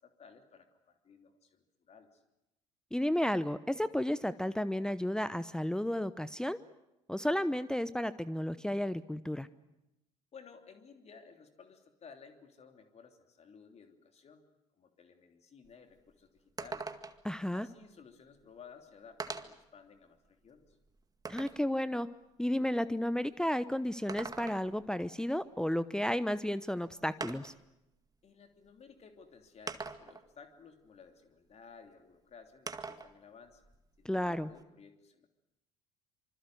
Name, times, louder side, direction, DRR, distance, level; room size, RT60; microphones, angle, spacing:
voice 1, 0.0-2.2 10.3-14.4 14.7-16.9 17.5-20.8 28.2-33.6 34.0-35.3, left 6 dB, 40° left, 6 dB, 3.2 m, -56 dB
voice 2, 2.9-6.6 7.1-9.5 17.2-17.7 21.3-22.1 22.4-27.5 34.0-34.5, left 1 dB, 5° left, 13 dB, 0.9 m, -32 dB
sound 1, 15.6-15.7 16.1-16.2 16.6-17.3 18.4-18.5 19.2-19.7 20.2-21.7 23.9-24.9 26.3-26.4 27.2-27.7 28.7-28.8 29.7-30.3 32.7-33.1 33.5-34.6, right 4 dB, 20° right, 2.0 m, -42 dB
26.0 x 25.5 x 7.9 m, 0.90 s
figure-of-eight pair, 55°, 16 cm